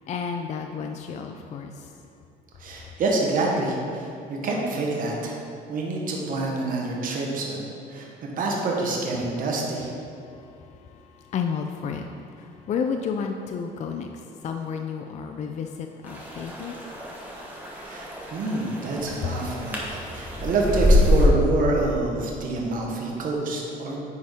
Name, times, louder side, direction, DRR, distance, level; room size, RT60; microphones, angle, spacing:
voice 1, 0.0-1.9 10.1-17.1, left 6 dB, 45° left, 5 dB, 0.4 m, -32 dB
voice 2, 2.6-5.4 5.7-9.9 17.7-24.0, right 2 dB, 55° right, -2 dB, 1.2 m, -27 dB
sound 1, 16.1-21.3, left 1 dB, 10° right, 1.4 m, -25 dB
9.3 x 4.2 x 3.6 m, 2.5 s
cardioid pair, 110°, 17 cm